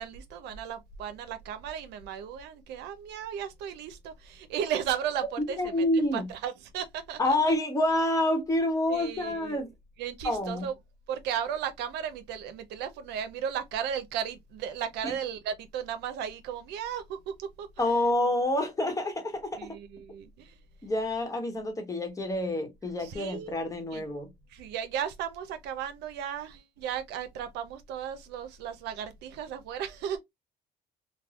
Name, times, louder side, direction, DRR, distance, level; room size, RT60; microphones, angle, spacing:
voice 1, 0.0-7.2 8.9-9.6 10.0-10.7 11.1-17.7 19.6-20.5 23.0-24.0 24.5-30.2, right 9 dB, 85° right, 0.6 m, -35 dB
voice 2, 5.6-6.3 7.2-9.7 10.2-10.7 15.0-15.2 17.8-19.8 20.8-24.3, left 1 dB, 20° left, 1.0 m, -28 dB
3.3 x 2.1 x 2.3 m
cardioid pair, 110°, 17 cm